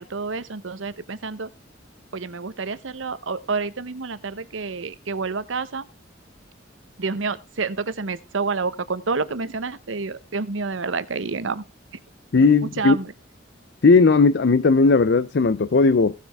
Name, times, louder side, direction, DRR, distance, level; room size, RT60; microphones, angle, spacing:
voice 1, 0.0-1.5 2.1-5.9 7.0-11.6 12.8-13.1, right 4 dB, 75° right, 0.9 m, -28 dB
voice 2, 12.3-13.0 13.8-16.1, left 4 dB, 55° left, 0.5 m, -16 dB
17.0 x 7.4 x 3.4 m
head